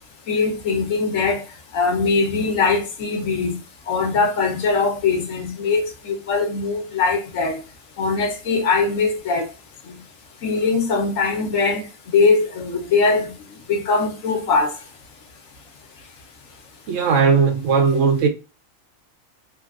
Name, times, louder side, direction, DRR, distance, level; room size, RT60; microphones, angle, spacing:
voice 1, 0.3-1.4 1.7-3.6 3.9-7.6 8.0-9.5 9.9-10.0 10.4-13.3 13.7-14.7, left 4 dB, 70° left, 1.1 m, -21 dB
voice 2, 16.9-18.3, right 5 dB, 70° right, 0.9 m, -17 dB
3.3 x 2.3 x 2.3 m
omnidirectional pair, 1.4 m